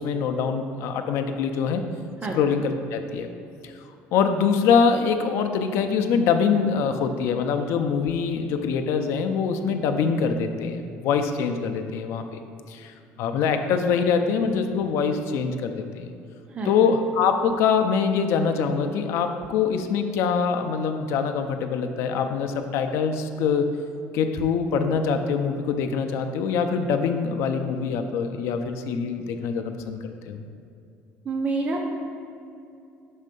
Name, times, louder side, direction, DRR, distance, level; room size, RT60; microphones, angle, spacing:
voice 1, 0.0-1.8 2.3-3.3 3.6-3.7 4.1-12.4 12.7-16.1 16.6-23.7 24.1-30.4, left 6 dB, 65° left, 6 dB, 0.4 m, -24 dB
voice 2, 31.3-31.9, right 3 dB, 25° right, 1 dB, 0.5 m, -27 dB
6.2 x 3.3 x 5.3 m, 2.6 s
cardioid pair, 165°, 5 cm